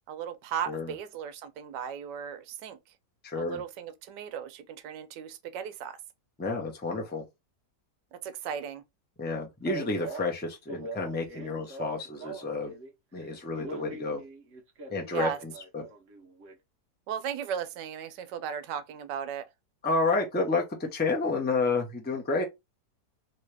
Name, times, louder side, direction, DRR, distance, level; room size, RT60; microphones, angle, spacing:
voice 1, 0.1-2.8 3.3-6.0 8.1-8.8 15.1-15.4 17.1-19.5, right 8 dB, 85° right, 1.2 m, -36 dB
voice 2, 3.2-3.6 6.4-7.2 9.2-12.7 13.1-14.2 14.9-15.8 19.8-22.4, left 3 dB, 15° left, 0.3 m, -30 dB
Male speech man speaking, 9.7-12.9 13.2-16.5, right 3 dB, 55° right, 1.0 m, -42 dB
3.1 x 2.8 x 3.2 m
omnidirectional pair, 1.8 m